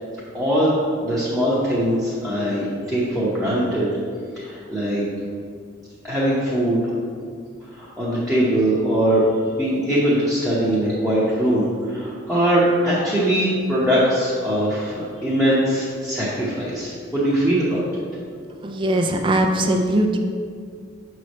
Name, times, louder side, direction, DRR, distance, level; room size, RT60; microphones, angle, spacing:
voice 1, 0.3-3.9 4.3-5.0 6.0-6.8 7.8-9.3 9.5-17.8, right 1 dB, ahead, -10 dB, 0.9 m, -21 dB
voice 2, 18.6-20.2, right 1 dB, 25° right, 3 dB, 0.4 m, -20 dB
6.8 x 3.2 x 5.3 m, 2.1 s
head